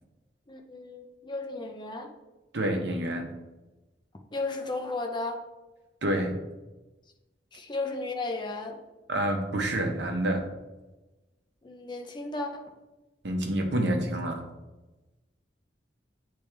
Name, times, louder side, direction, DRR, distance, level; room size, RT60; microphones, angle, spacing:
voice 1, 0.5-2.1 4.3-5.4 7.5-8.8 11.6-12.7, left 2 dB, 25° left, 4 dB, 0.7 m, -34 dB
voice 2, 2.5-3.3 6.0-6.4 9.1-10.5 13.2-14.5, right 1 dB, 65° right, 2 dB, 0.9 m, -28 dB
8.7 x 3.4 x 3.3 m, 1.1 s
head